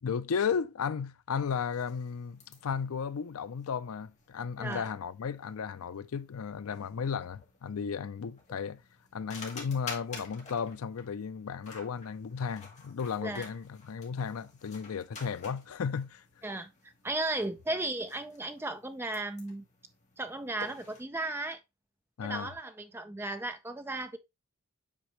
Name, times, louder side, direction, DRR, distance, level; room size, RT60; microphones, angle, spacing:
voice 1, 0.0-8.8 9.1-16.2 22.2-22.5, left 6 dB, 80° left, 0.4 m, -34 dB
sound 1, 1.4-21.0, left 3 dB, 30° left, 1.9 m, -51 dB
voice 2, 16.4-19.6 20.2-21.6 22.2-24.2, right 2 dB, 10° right, 0.5 m, -35 dB
7.4 x 4.3 x 3.1 m
head